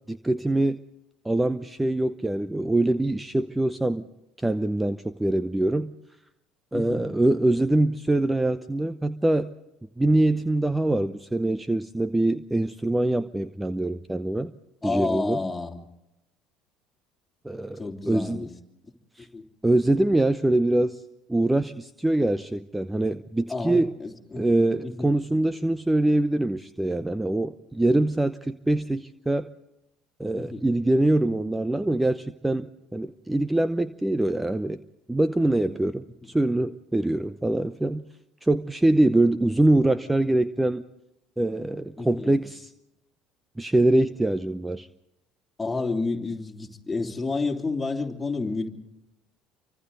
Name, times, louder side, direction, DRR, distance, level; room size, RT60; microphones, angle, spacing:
voice 1, 0.1-0.8 1.2-4.0 4.4-5.9 6.7-9.5 10.0-14.5 14.8-15.4 17.4-18.5 19.2-19.3 19.6-21.0 21.3-23.9 24.4-29.5 30.2-34.8 35.1-38.0 38.4-40.8 41.4-42.7 43.6-44.9, right 1 dB, 10° right, 14 dB, 0.7 m, -24 dB
voice 2, 6.7-7.0 14.8-15.8 17.8-18.5 19.3-19.4 23.5-24.5 24.8-25.1 30.4-30.6 42.0-42.4 45.6-48.7, left 3 dB, 15° left, 2 dB, 3.1 m, -30 dB
28.5 x 25.0 x 4.0 m, 0.90 s
hypercardioid pair, 60°, 0 cm